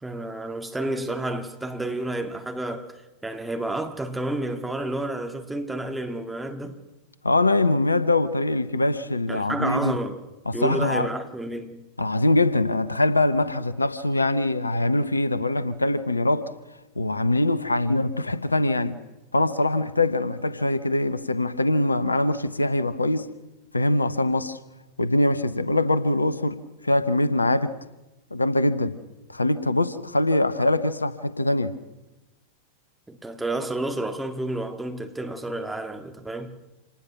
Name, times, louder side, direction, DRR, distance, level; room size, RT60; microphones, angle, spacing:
voice 1, 0.0-6.8 9.3-10.2 10.5-11.8 33.1-36.6, right 1 dB, 5° right, 2.2 m, -30 dB
voice 2, 7.2-10.0 10.5-11.1 12.0-16.5 17.0-19.0 19.3-23.3 23.7-24.6 25.0-27.8 28.3-29.0 29.3-31.8, left 2 dB, 80° left, 1.0 m, -23 dB
27.0 x 19.0 x 6.2 m
figure-of-eight pair, 90°, 0 cm